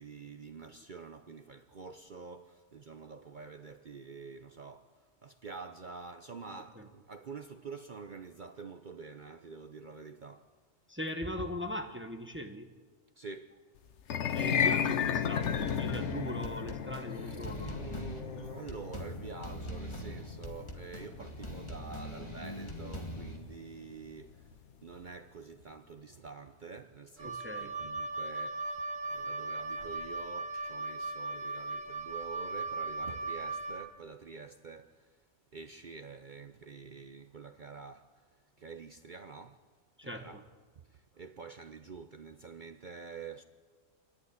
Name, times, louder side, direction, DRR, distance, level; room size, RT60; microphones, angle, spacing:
voice 1, 0.0-4.9 5.2-10.5 13.2-13.5 17.1-24.5 24.8-35.1 35.5-38.2 38.6-39.6 40.0-40.5 40.9-43.4, right 5 dB, 45° right, 0.8 m, -47 dB
voice 2, 6.5-6.9 10.9-12.7 14.3-17.8 27.2-27.7 40.0-40.4, equal, 10° right, 1.3 m, -40 dB
sound 1, 14.0-24.3, left 8 dB, 65° left, 1.1 m, -35 dB
sound 2, 15.4-23.4, equal, 20° left, 2.1 m, -42 dB
Wind instrument woodwind instrument, 27.2-33.9, right 3 dB, 85° right, 2.3 m, -38 dB
27.0 x 11.0 x 9.6 m
omnidirectional pair, 1.3 m